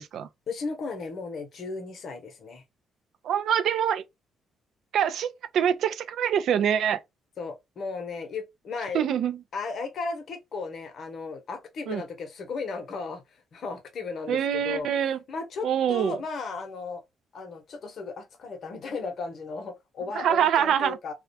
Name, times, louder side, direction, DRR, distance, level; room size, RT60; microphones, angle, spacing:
voice 1, 0.5-2.6 7.4-9.1 9.5-13.2 13.5-14.9 15.3-17.0 17.3-21.1, left 4 dB, 60° left, 0.7 m, -35 dB
voice 2, 3.2-4.0 4.9-7.0 8.9-9.4 11.9-12.0 14.3-15.2 15.6-16.2 20.1-21.0, right 9 dB, 70° right, 0.3 m, -25 dB
2.3 x 2.1 x 2.6 m
cardioid pair, 90°, 0 cm